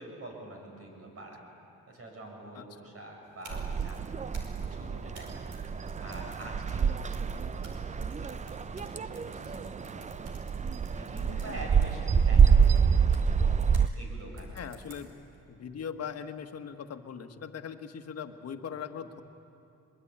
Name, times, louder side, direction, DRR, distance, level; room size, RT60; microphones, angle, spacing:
voice 1, 0.0-1.4 1.9-10.0 10.9-12.9 13.9-14.7, right 1 dB, 50° right, 1 dB, 7.5 m, -46 dB
sound 1, 3.2-13.9 14.4-15.3, right 3 dB, 75° right, 4.9 m, -54 dB
sound 2, 3.5-13.9, right 6 dB, 25° right, 0.5 m, -27 dB
voice 2, 14.5-15.1 15.5-19.2, left 7 dB, 55° left, 6 dB, 1.6 m, -40 dB
23.5 x 22.0 x 8.9 m, 2.8 s
cardioid pair, 90°, 30 cm